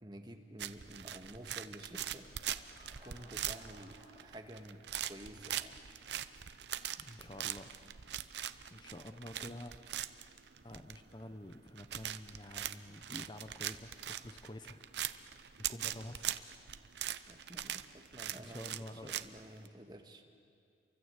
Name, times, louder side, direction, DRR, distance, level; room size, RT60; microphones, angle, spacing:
voice 1, 0.0-2.3 3.0-5.8 17.3-20.2, right 1 dB, 25° right, 5 dB, 1.7 m, -51 dB
sound 1, 0.6-19.7, right 11 dB, 80° right, 0.8 m, -42 dB
Laughter / Crowd, 2.2-5.1, equal, 75° left, 6.0 m, -61 dB
voice 2, 7.0-7.8 8.7-9.7 10.6-14.8 15.1-15.4 15.7-16.3 18.3-19.1, left 1 dB, 25° left, 8 dB, 0.8 m, -49 dB
30.0 x 24.0 x 8.3 m, 2.4 s
head